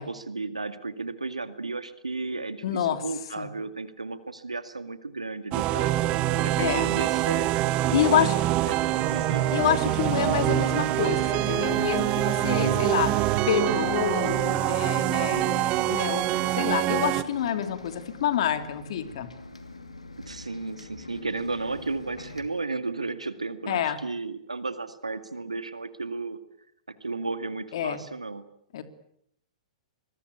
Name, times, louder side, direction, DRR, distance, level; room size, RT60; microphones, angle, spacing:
voice 1, 0.0-5.9 6.4-7.6 8.0-8.3 8.7-8.8 9.1-9.4 12.5-12.8 20.3-26.4 26.9-28.4, right 3 dB, 90° right, 11 dB, 2.1 m, -34 dB
voice 2, 2.6-3.0 3.4-3.5 6.6-6.9 7.9-8.3 9.5-13.1 13.5-16.3 16.5-19.3 23.7-24.0 27.7-28.0 28.7-28.8, left 9 dB, 55° left, 9 dB, 2.9 m, -27 dB
sound 1, 5.5-17.2, right 15 dB, 35° right, 1.2 m, -25 dB
Bus, 8.6-22.4, left 2 dB, 90° left, 2.8 m, -40 dB
25.5 x 22.0 x 8.4 m, 0.74 s
figure-of-eight pair, 110°, 3 cm